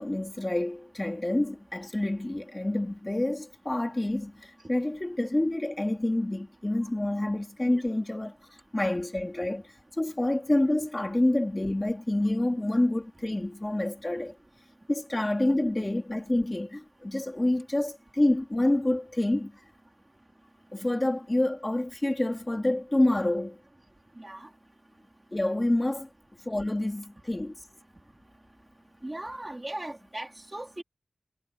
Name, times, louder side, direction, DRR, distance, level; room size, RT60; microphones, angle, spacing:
voice 1, 0.0-8.4 8.7-14.4 14.9-19.5 20.7-23.6 25.3-26.1 26.4-27.5, left 1 dB, 20° left, 2.9 m, -28 dB
voice 2, 24.2-24.5 29.0-30.8, right 1 dB, 20° right, 4.0 m, -38 dB
wide cardioid pair, 100°, 0 cm